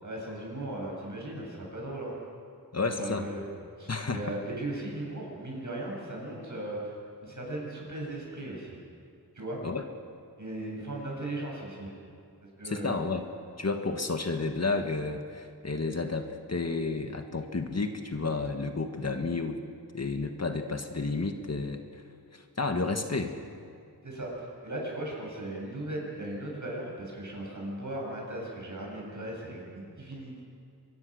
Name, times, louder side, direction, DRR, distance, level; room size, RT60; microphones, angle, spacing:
voice 1, 0.0-2.2 3.0-3.5 3.8-8.8 9.3-9.6 10.4-11.9 12.6-13.0 24.0-30.4, right 1 dB, 50° right, -2 dB, 8.0 m, -37 dB
voice 2, 2.7-3.2 3.9-4.2 9.6-9.8 12.6-13.3 13.6-19.6 19.9-21.8 22.3-23.3, left 3 dB, 40° left, 5 dB, 1.6 m, -31 dB
24.5 x 22.0 x 6.5 m, 2.5 s
wide cardioid pair, 70°, 38 cm